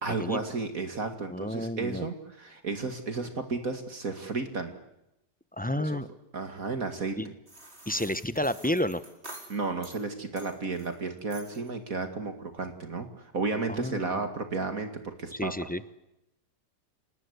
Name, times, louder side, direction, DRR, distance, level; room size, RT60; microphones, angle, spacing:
voice 1, 0.0-4.7 5.8-6.0 6.3-7.3 9.5-15.5, right 3 dB, 50° right, 7 dB, 2.6 m, -33 dB
voice 2, 1.3-2.1 5.5-6.1 7.2-7.3 7.9-9.0 13.7-14.0 15.3-15.8, left 1 dB, 10° left, 14 dB, 0.4 m, -30 dB
sound 1, 7.5-10.0 10.4-10.9 11.3-11.7, right 1 dB, 35° right, 5.2 m, -48 dB
29.0 x 19.5 x 8.2 m, 0.86 s
omnidirectional pair, 1.9 m